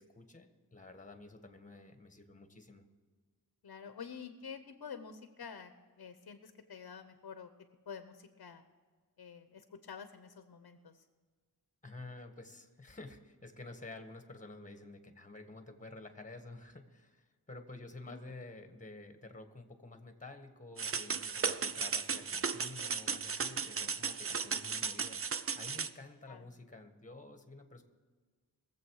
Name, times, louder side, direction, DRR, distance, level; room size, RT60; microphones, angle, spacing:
voice 1, 0.0-2.8 11.8-27.8, left 2 dB, 20° left, 7 dB, 1.6 m, -51 dB
voice 2, 3.6-7.5 7.9-8.6 9.2-11.1 18.1-18.2 23.4-23.9 26.3-26.5, left 6 dB, 65° left, 9 dB, 1.0 m, -49 dB
sound 1, 20.8-25.9, right 5 dB, 35° right, 0.6 m, -35 dB
21.5 x 7.7 x 4.8 m, 1.5 s
wide cardioid pair, 85°, 39 cm